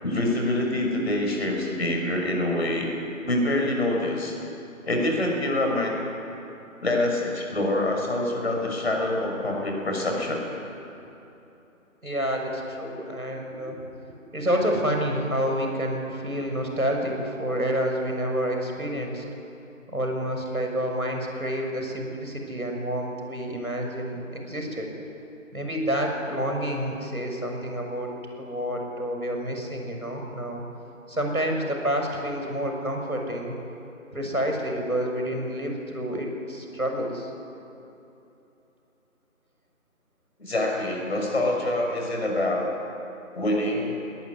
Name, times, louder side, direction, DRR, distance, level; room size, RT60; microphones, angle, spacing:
voice 1, 0.0-2.9 3.3-4.3 4.9-5.9 6.8-10.4 40.4-42.7 43.3-44.0, left 1 dB, 50° left, 0 dB, 6.3 m, -25 dB
voice 2, 12.0-13.8 14.3-19.2 19.9-24.9 25.5-28.1 28.4-30.6 31.1-33.5 34.1-37.3, equal, 90° right, 2 dB, 6.8 m, -28 dB
20.5 x 19.0 x 9.8 m, 2.9 s
figure-of-eight pair, 160°, 42 cm